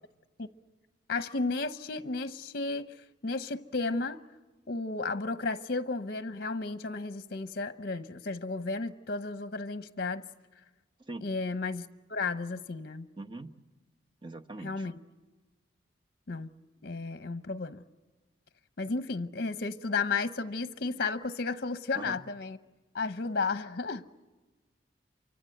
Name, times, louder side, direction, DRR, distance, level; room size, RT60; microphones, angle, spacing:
voice 1, 1.1-2.9 3.2-4.2 4.7-10.2 11.2-13.1 14.6-15.0 16.3-16.5 16.8-17.8 18.8-22.6 22.9-24.0, left 3 dB, 55° left, 0.8 m, -33 dB
voice 2, 13.2-13.5 14.2-14.9 21.9-22.2, right 2 dB, 25° right, 1.1 m, -41 dB
28.5 x 24.5 x 7.8 m
head